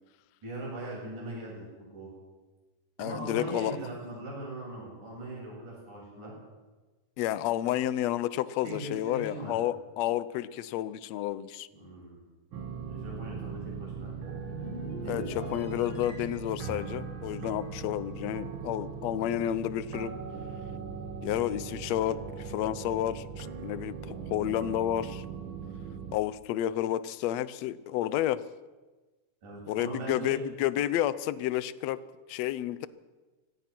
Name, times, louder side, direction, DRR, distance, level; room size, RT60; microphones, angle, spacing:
voice 1, 0.4-2.1 3.0-6.3 7.7-7.8 8.6-9.5 11.7-12.2 12.8-14.1 15.0-15.5 29.4-30.4, right 1 dB, 70° right, -4 dB, 9.6 m, -40 dB
voice 2, 3.0-3.8 7.2-11.7 15.1-20.1 21.2-25.2 26.1-28.4 29.7-32.0 32.3-32.9, left 12 dB, 75° left, 16 dB, 1.6 m, -31 dB
sound 1, 12.5-26.2, right 6 dB, 50° right, 1.6 m, -39 dB
sound 2, 14.0-18.7 19.0-19.3, left 1 dB, 10° left, 3.3 m, -46 dB
24.5 x 17.5 x 6.0 m, 1.2 s
omnidirectional pair, 3.7 m